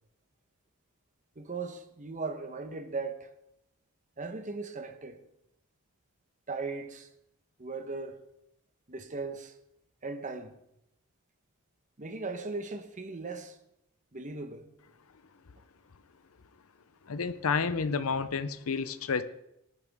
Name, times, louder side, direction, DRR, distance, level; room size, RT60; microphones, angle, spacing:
voice 1, 1.4-3.3 4.2-5.2 6.5-7.1 7.6-8.2 8.9-9.5 10.0-10.5 12.0-13.6 14.1-14.7, right 3 dB, 35° right, 1.1 m, -38 dB
voice 2, 17.1-19.2, left 5 dB, 70° left, 0.6 m, -30 dB
19.5 x 9.6 x 3.6 m
head